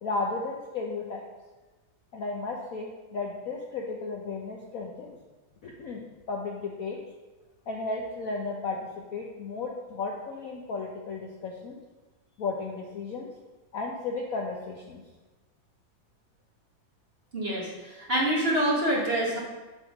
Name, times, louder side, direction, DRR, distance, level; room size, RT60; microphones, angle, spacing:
voice 1, 0.0-1.2 2.1-5.2 5.6-7.0 7.7-11.8 12.4-13.3 13.7-15.0, left 3 dB, 65° left, 0 dB, 0.9 m, -34 dB
voice 2, 17.3-19.4, right 1 dB, 35° right, -4 dB, 1.4 m, -26 dB
7.0 x 3.6 x 5.8 m, 1.2 s
omnidirectional pair, 2.1 m